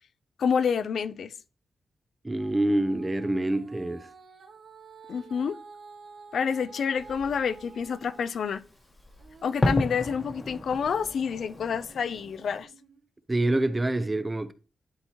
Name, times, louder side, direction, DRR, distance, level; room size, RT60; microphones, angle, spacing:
voice 1, 0.4-1.3 5.1-5.6 6.3-8.6 9.4-12.7, left 6 dB, 70° left, 0.4 m, -28 dB
voice 2, 2.2-4.1 13.3-14.5, right 1 dB, 15° right, 0.6 m, -26 dB
Female singing, 2.4-8.3 8.7-13.0 13.6-13.7, right 4 dB, 80° right, 2.2 m, -51 dB
Fireworks, 7.0-12.6, left 1 dB, 25° left, 1.2 m, -34 dB
11.5 x 4.3 x 2.9 m
wide cardioid pair, 115°, 0 cm